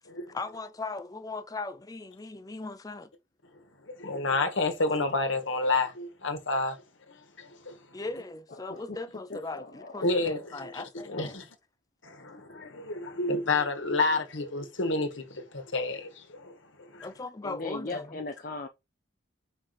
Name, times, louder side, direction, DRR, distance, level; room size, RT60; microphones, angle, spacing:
voice 1, 0.3-3.1 7.9-11.4 17.0-18.2, left 3 dB, 20° left, 0.4 m, -38 dB
voice 2, 3.5-7.8 10.0-11.4 12.0-17.1, left 3 dB, 85° left, 1.6 m, -30 dB
voice 3, 9.3-10.1 17.4-18.7, left 3 dB, 45° left, 0.8 m, -38 dB
5.4 x 5.0 x 4.1 m
head